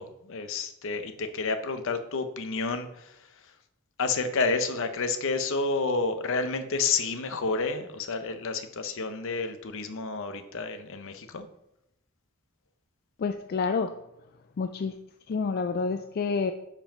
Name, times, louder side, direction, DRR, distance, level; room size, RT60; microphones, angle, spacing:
voice 1, 0.0-3.2 4.0-11.5, left 4 dB, 65° left, 9 dB, 0.7 m, -30 dB
voice 2, 13.2-13.9 14.6-14.9 15.3-16.5, left 4 dB, 45° left, 7 dB, 0.3 m, -28 dB
5.5 x 4.9 x 5.1 m, 0.83 s
head